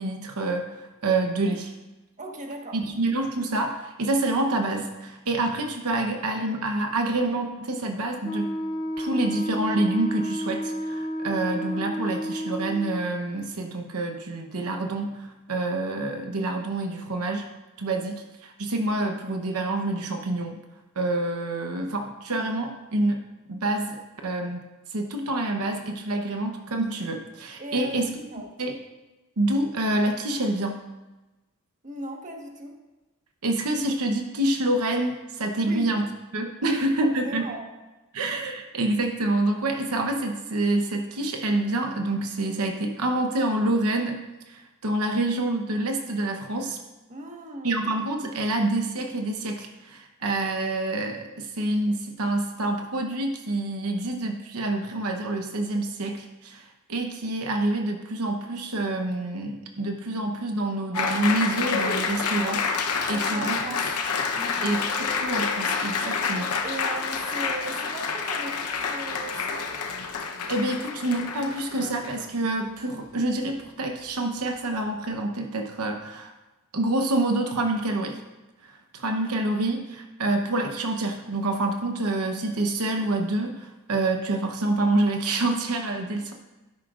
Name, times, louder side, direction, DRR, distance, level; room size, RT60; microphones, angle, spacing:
voice 1, 0.0-1.7 2.7-8.5 9.0-17.5 17.8-20.6 21.0-23.2 23.5-24.6 24.9-28.1 28.6-28.7 29.4-30.9 33.4-36.0 36.3-37.5 38.1-44.2 44.5-46.8 47.6-63.7 64.6-66.6 70.5-76.3 76.7-78.2 78.6-86.3, right 2 dB, 80° right, 4 dB, 0.9 m, -27 dB
voice 2, 2.2-2.8 27.6-28.5 31.8-32.8 35.6-36.0 36.6-37.6 47.1-47.8 63.0-64.0 64.3-64.8 66.6-69.7, right 1 dB, 35° right, 1 dB, 1.3 m, -37 dB
Wind instrument woodwind instrument, 8.2-13.1, equal, 20° left, 0.5 m, -31 dB
Applause, 60.9-72.3, left 5 dB, 85° left, 0.8 m, -28 dB
12.5 x 11.0 x 2.5 m, 1.1 s
head